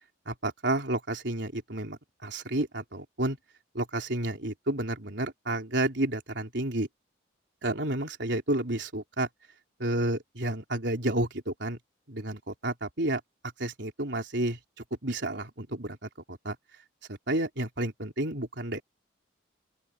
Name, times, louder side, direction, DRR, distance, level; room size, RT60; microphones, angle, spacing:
voice 1, 0.3-3.4 3.7-6.9 7.6-9.3 9.8-11.8 12.1-13.2 13.6-14.6 15.0-16.6 17.1-18.8, right 1 dB, 65° right, 3.9 m, -31 dB
open air
head